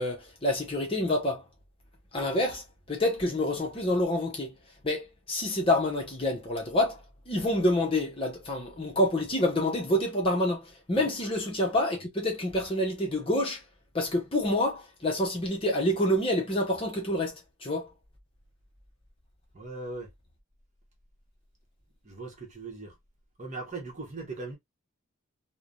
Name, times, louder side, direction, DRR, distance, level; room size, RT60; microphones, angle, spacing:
voice 1, 0.0-1.4 2.1-2.6 2.9-4.5 4.8-7.0 7.3-13.6 13.9-17.9, left 1 dB, 25° left, 0.8 m, -27 dB
voice 2, 19.5-20.1 22.0-23.0 23.4-24.6, right 3 dB, 35° right, 1.0 m, -39 dB
3.2 x 2.2 x 2.4 m
head